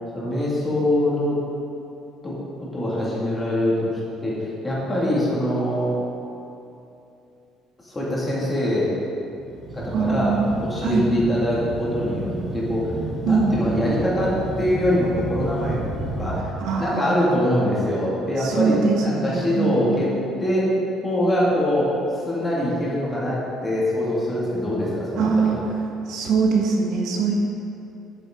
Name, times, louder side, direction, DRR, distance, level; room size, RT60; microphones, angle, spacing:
voice 1, 0.1-1.4 2.2-2.4 2.7-3.9 4.2-5.9 7.8-8.9 9.7-13.0 13.3-15.8 16.1-20.1 20.4-20.7 21.0-21.9 22.2-25.6, left 1 dB, 15° left, -7 dB, 2.3 m, -23 dB
sound 1, 9.4-16.4, right 2 dB, 20° right, 1.2 m, -31 dB
voice 2, 9.9-10.4 10.8-11.1 13.2-13.6 16.6-17.2 18.4-20.0 25.2-25.6 26.1-27.3, right 5 dB, 65° right, 0 dB, 1.4 m, -22 dB
10.5 x 8.7 x 3.8 m, 2.8 s
cardioid pair, 170°, 0 cm